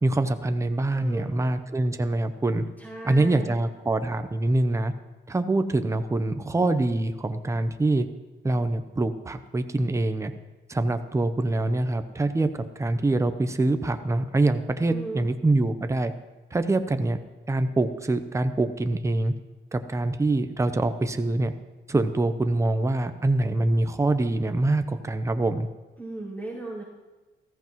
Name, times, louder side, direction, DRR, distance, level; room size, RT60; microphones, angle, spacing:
voice 1, 0.0-2.6 3.0-4.9 5.3-8.1 8.4-10.3 10.7-16.1 16.5-17.2 17.5-19.3 19.7-21.5 21.9-25.7, right 2 dB, 15° right, 8 dB, 0.8 m, -25 dB
voice 2, 0.9-1.3 2.8-3.6 14.8-15.3 26.0-26.8, right 2 dB, 10° left, -10 dB, 4.9 m, -36 dB
14.5 x 14.0 x 3.1 m, 1.2 s
cardioid pair, 90°, 20 cm